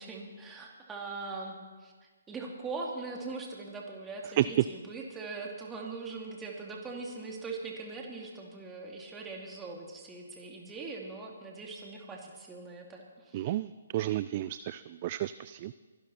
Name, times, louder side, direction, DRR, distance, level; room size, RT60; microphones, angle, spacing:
voice 1, 0.0-1.9 2.3-13.5, right 3 dB, 10° right, -1 dB, 2.5 m, -41 dB
voice 2, 13.3-15.7, right 14 dB, 35° right, 16 dB, 0.3 m, -32 dB
23.5 x 12.0 x 4.2 m, 1.5 s
figure-of-eight pair, 135°, 0 cm